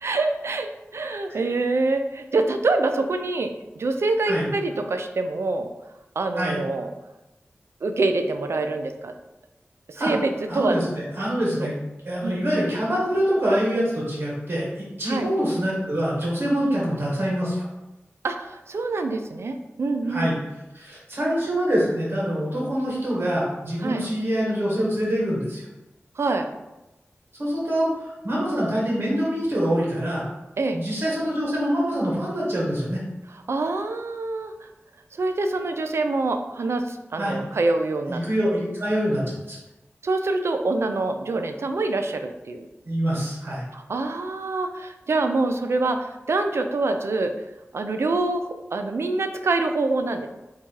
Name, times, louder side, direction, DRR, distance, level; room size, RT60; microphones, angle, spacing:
voice 1, 0.0-5.7 6.2-6.9 7.8-9.1 9.9-10.8 11.6-11.7 12.2-12.4 15.1-15.3 16.6-16.8 18.2-20.3 23.8-24.0 26.2-26.5 30.6-30.8 33.3-34.7 35.1-38.6 40.0-42.7 43.7-47.3 47.7-50.3, right 3 dB, 75° right, 7 dB, 0.4 m, -25 dB
voice 2, 10.5-11.7 12.0-17.6 20.1-20.4 20.7-25.6 27.4-30.2 30.7-33.0 37.2-37.4 38.1-39.2 39.5-39.6 42.8-43.6, equal, 55° right, -5 dB, 1.5 m, -25 dB
3.6 x 2.8 x 4.5 m, 0.99 s
wide cardioid pair, 90°, 5 cm